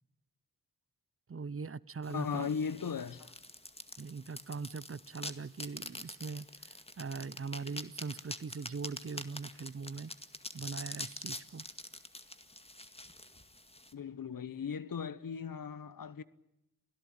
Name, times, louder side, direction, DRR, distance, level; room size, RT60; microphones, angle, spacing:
voice 1, 1.3-2.5 4.0-10.1 10.5-11.6, right 4 dB, 40° right, 0.8 m, -41 dB
sound 1, 2.0-13.9, left 1 dB, 20° left, 2.0 m, -46 dB
voice 2, 2.1-3.3 13.9-16.2, left 6 dB, 80° left, 1.2 m, -37 dB
28.0 x 18.0 x 8.8 m
wide cardioid pair, 65°, 33 cm